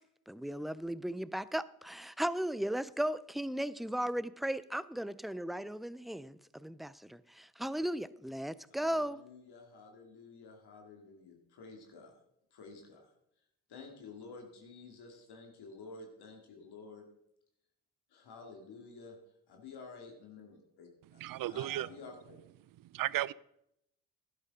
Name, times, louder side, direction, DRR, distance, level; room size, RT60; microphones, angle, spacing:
voice 1, 0.3-9.2, right 1 dB, ahead, 0.4 m, -36 dB
voice 2, 8.7-12.2 12.5-13.1 13.7-17.1 18.1-19.2 19.5-22.4, left 4 dB, 65° left, 2.4 m, -51 dB
voice 3, 21.2-21.9 22.8-23.3, right 14 dB, 55° right, 0.5 m, -34 dB
12.5 x 11.5 x 3.7 m
hypercardioid pair, 45°, 42 cm